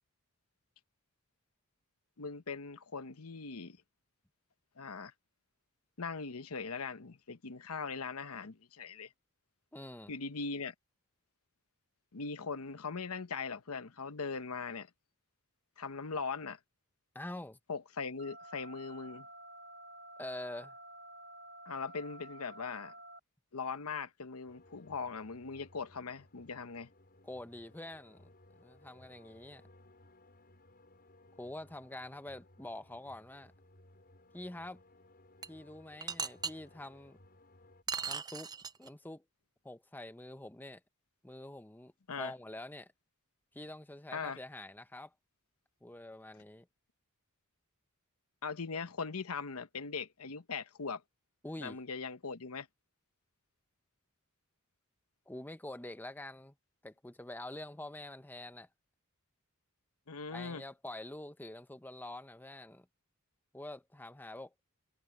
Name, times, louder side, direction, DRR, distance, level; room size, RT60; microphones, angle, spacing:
voice 1, 2.2-3.8 4.8-5.1 6.0-9.1 10.1-10.7 12.1-14.9 15.8-16.6 17.7-19.3 21.7-22.9 23.5-26.9 42.1-42.3 44.1-44.4 48.4-51.0 51.6-52.7 60.1-60.6, left 5 dB, 85° left, 1.0 m, -40 dB
voice 2, 9.7-10.1 17.1-17.6 20.2-20.8 27.2-28.3 28.6-29.6 31.4-33.5 34.3-34.8 35.5-37.2 38.1-38.5 38.8-39.2 39.6-40.8 41.2-41.9 42.2-42.9 43.5-45.1 45.8-46.7 51.4-51.8 55.3-56.5 56.8-58.7 60.3-62.9 63.5-64.5, left 1 dB, 10° left, 0.8 m, -46 dB
sound 1, 18.2-23.2, right 1 dB, 55° right, 1.3 m, -51 dB
sound 2, 24.5-37.8, left 1 dB, 45° left, 6.8 m, -62 dB
sound 3, 35.4-35.5 36.0-36.5 37.9-38.9, right 6 dB, 20° right, 0.5 m, -37 dB
head